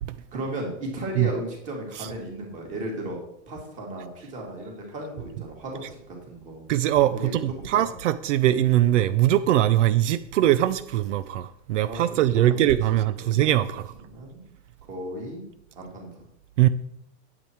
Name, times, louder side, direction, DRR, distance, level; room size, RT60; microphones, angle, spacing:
voice 1, 0.3-3.2 3.5-6.7 7.1-7.3 7.6-7.8 11.9-12.0 12.3-12.7 12.9-13.4 14.0-14.4 14.9-15.4 15.8-16.1, right 1 dB, 20° right, 2.6 m, -35 dB
voice 2, 6.7-13.9 16.6-16.7, right 13 dB, 80° right, 0.6 m, -21 dB
9.0 x 8.8 x 4.6 m
supercardioid pair, 175°, 36 cm